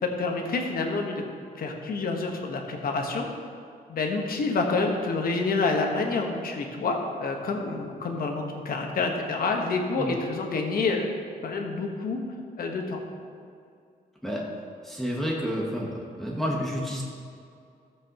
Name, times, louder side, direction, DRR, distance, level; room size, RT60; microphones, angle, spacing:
voice 1, 0.0-1.2 1.6-3.3 3.9-11.1 11.4-12.2 12.6-13.0, left 3 dB, 65° left, 2 dB, 1.3 m, -28 dB
voice 2, 14.8-15.9 16.2-17.0, equal, ahead, -4 dB, 1.1 m, -29 dB
14.5 x 7.8 x 3.0 m, 2.4 s
wide cardioid pair, 175°, 16 cm